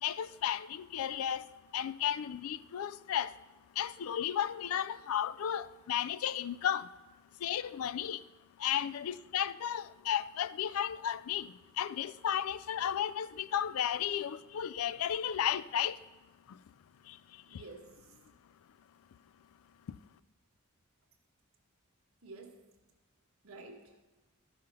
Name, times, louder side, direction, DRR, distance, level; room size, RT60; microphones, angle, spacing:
voice 1, 0.0-3.3 3.7-6.9 7.4-8.2 8.6-16.0 16.5-16.6 17.0-17.6, left 9 dB, 75° left, 0.4 m, -34 dB
voice 2, 17.5-18.3 22.2-22.8 23.4-24.1, right 3 dB, 75° right, 1.4 m, -51 dB
13.0 x 5.7 x 5.5 m
head